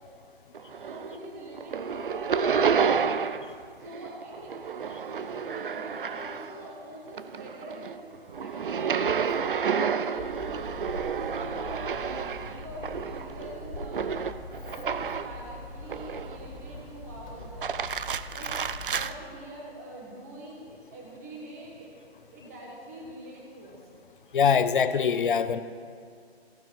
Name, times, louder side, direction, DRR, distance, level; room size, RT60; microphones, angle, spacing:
sound 1, 0.5-1.3 1.5-3.6 3.8-6.7 7.1-15.4 15.9-16.6 17.4-19.1, right 6 dB, 55° right, 0.5 m, -30 dB
voice 1, 0.9-4.5 5.2-8.0 8.4-8.6 9.4-10.8 11.2-14.2 14.5-17.8 18.3-18.6 18.8-21.9 22.3-23.8, right 1 dB, 15° right, -2 dB, 1.4 m, -44 dB
Hammer, 10.2-19.0, left 2 dB, 35° left, 2.6 m, -43 dB
voice 2, 24.3-25.6, left 6 dB, 55° left, 12 dB, 0.6 m, -23 dB
15.5 x 12.0 x 4.5 m, 2.2 s
hypercardioid pair, 175°, 32 cm